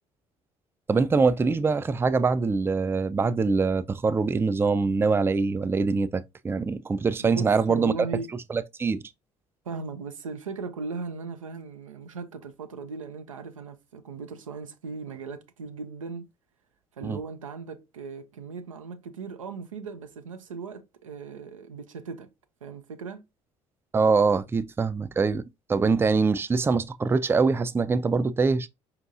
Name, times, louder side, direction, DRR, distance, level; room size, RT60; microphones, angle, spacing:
voice 1, 0.9-7.9 8.5-9.0 17.0-17.2 23.9-25.4 25.7-28.7, right 4 dB, 15° right, 0.3 m, -24 dB
voice 2, 7.2-8.3 9.7-16.3 16.9-22.3 22.6-23.2, right 4 dB, 85° right, 0.4 m, -38 dB
5.1 x 2.8 x 2.4 m
figure-of-eight pair, 50°, 17 cm